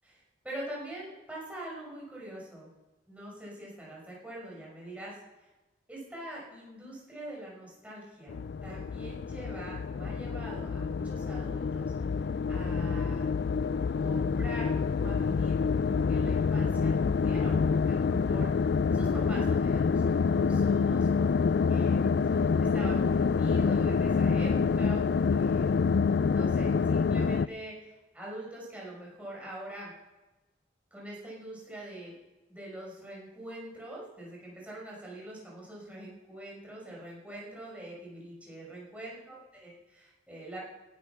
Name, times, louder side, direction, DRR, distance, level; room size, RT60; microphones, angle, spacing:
voice 1, 0.0-2.7 3.1-5.5 5.9-13.3 14.0-18.5 18.9-25.7 26.3-29.9 30.9-32.1 32.5-40.6, right 1 dB, 10° right, -4 dB, 6.0 m, -44 dB
sound 1, 8.3-27.5, left 5 dB, 65° left, 0.4 m, -27 dB
17.5 x 9.6 x 6.1 m, 1.1 s
head